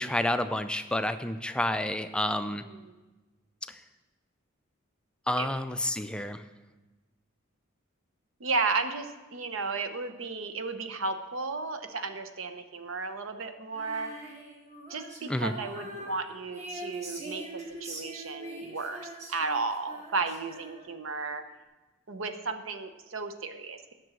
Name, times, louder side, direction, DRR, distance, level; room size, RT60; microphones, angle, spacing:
voice 1, 0.0-2.6 5.3-6.4 15.3-15.5, left 1 dB, 5° left, 9 dB, 0.3 m, -29 dB
voice 2, 2.5-2.9 5.4-5.5 8.4-14.1 14.9-21.4 22.1-23.9, right 4 dB, 80° right, 8 dB, 0.8 m, -34 dB
Female singing, 13.7-21.1, right 1 dB, 35° right, 1.6 m, -43 dB
7.7 x 6.1 x 7.6 m, 1.2 s
head